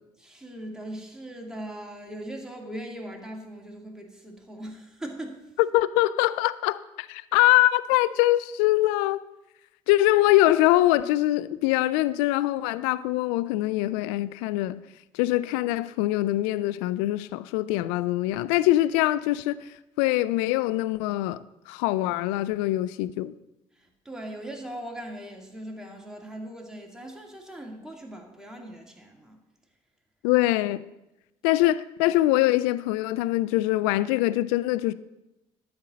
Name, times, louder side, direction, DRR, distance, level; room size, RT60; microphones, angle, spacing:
voice 1, 0.2-5.4 23.7-29.4, right 1 dB, 5° right, 2.3 m, -40 dB
voice 2, 5.7-9.2 9.9-14.8 15.1-19.7 20.0-23.3 30.2-30.8 31.4-34.9, left 16 dB, 70° left, 0.4 m, -23 dB
12.0 x 4.4 x 6.2 m
hypercardioid pair, 50°, 18 cm